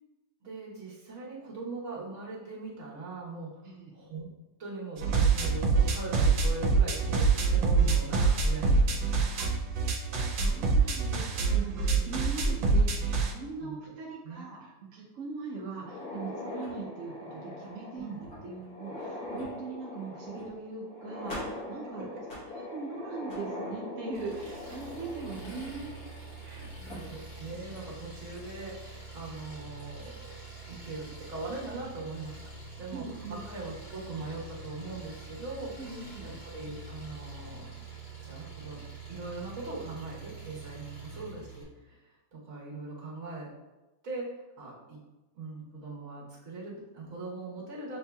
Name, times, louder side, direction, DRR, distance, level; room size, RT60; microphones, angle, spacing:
voice 1, 0.4-4.3 4.6-9.1 13.6-13.8 14.2-14.5 17.9-18.2 21.8-22.2 26.4-30.4 30.7-32.4 32.8-35.8 36.2-37.7 38.2-38.8 39.1-42.0 42.3-43.5 44.0-45.0 45.3-48.0, right 3 dB, 45° right, -5 dB, 1.3 m, -41 dB
sound 1, 5.0-13.3, right 4 dB, 90° right, 1.4 m, -25 dB
voice 2, 10.3-18.1 18.4-22.1 22.5-26.0 26.3-27.1 32.9-33.4 35.8-36.4 40.9-41.2, right 4 dB, 70° right, -3 dB, 0.7 m, -41 dB
sound 2, 15.7-26.5 26.9-27.0 27.8-27.9 28.4-28.5 29.8-30.1, left 1 dB, 55° left, 1.5 m, -41 dB
Engine, 24.1-41.6, right 3 dB, 80° left, 2.0 m, -45 dB
6.9 x 2.7 x 2.3 m, 1.1 s
omnidirectional pair, 2.0 m